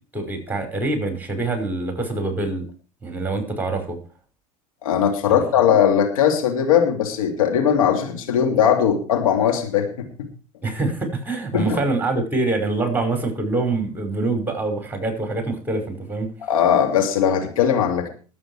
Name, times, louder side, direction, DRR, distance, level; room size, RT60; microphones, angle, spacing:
voice 1, 0.1-2.6 3.0-4.0 5.3-5.4 10.6-16.3, right 2 dB, 10° right, 6 dB, 5.4 m, -25 dB
voice 2, 4.8-10.1 11.5-11.8 16.5-18.1, left 8 dB, 70° left, 3 dB, 2.8 m, -19 dB
20.5 x 8.6 x 4.8 m, 0.37 s
figure-of-eight pair, 75°, 18 cm